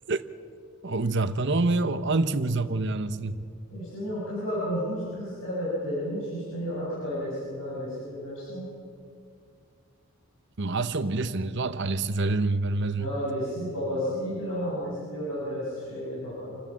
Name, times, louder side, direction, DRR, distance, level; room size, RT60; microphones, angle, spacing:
voice 1, 0.8-3.4 10.6-13.1, right 3 dB, 55° right, 0.9 m, -26 dB
voice 2, 3.7-8.7 13.0-16.6, equal, 75° left, 7.8 m, -32 dB
28.5 x 13.0 x 7.5 m
head